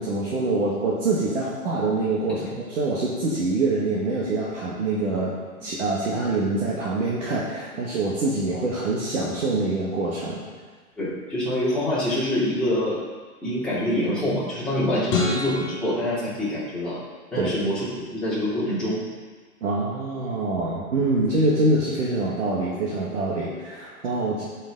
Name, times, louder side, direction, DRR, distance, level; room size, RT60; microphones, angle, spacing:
voice 1, 0.0-5.3 5.6-10.4 17.4-17.6 19.6-24.5, right 2 dB, 55° right, -6 dB, 1.9 m, -25 dB
voice 2, 11.0-13.0 13.4-17.0 17.3-19.0 20.7-20.8, left 1 dB, ahead, -11 dB, 2.8 m, -25 dB
sound 1, 15.1-17.4, left 3 dB, 30° left, 2.3 m, -30 dB
12.0 x 5.6 x 3.7 m, 1.4 s
hypercardioid pair, 140°, 45 cm